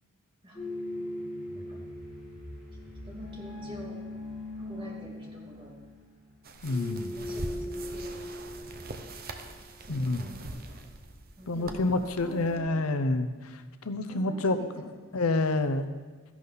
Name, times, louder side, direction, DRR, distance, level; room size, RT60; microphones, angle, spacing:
sound 1, 0.5-9.6, left 1 dB, 5° right, 4.9 m, -40 dB
voice 1, 1.0-1.8 3.0-4.0 4.5-5.8 7.1-8.4 9.8-11.0 11.4-12.9 14.0-15.1, right 1 dB, 25° right, -3 dB, 2.5 m, -47 dB
sound 2, 6.4-12.6, right 2 dB, 45° right, 0.9 m, -43 dB
voice 2, 6.6-7.1 9.9-10.3 11.5-14.6 15.1-15.9, left 2 dB, 90° left, 10 dB, 0.8 m, -28 dB
14.0 x 11.0 x 4.0 m, 1.4 s
head